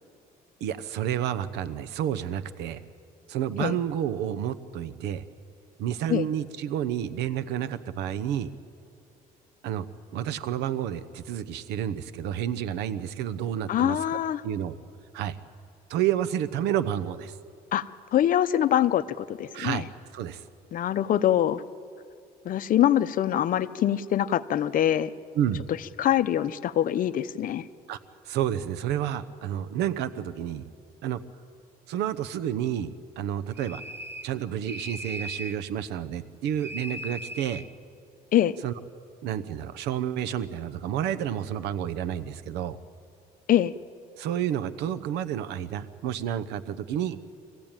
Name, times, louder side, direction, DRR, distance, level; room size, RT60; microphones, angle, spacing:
voice 1, 0.6-2.8 3.3-5.2 5.8-8.5 9.6-9.9 10.1-14.8 15.1-15.4 15.9-17.4 19.5-19.8 20.1-20.4 25.3-25.6 27.9-28.0 28.2-30.6 31.0-31.2 31.9-32.9 33.2-33.8 34.2-37.6 38.6-38.7 39.2-42.8 44.2-47.2, right 10 dB, 85° right, 13 dB, 0.9 m, -30 dB
voice 2, 13.7-14.4 17.7-19.9 20.7-21.6 22.4-25.1 26.0-27.7 38.3-38.6 43.5-43.7, left 11 dB, 55° left, 13 dB, 0.8 m, -24 dB
sound 1, 33.5-34.4 34.7-35.6 36.6-37.7, equal, 15° right, 1.0 m, -38 dB
24.5 x 15.5 x 9.0 m, 2.4 s
cardioid pair, 110°, 17 cm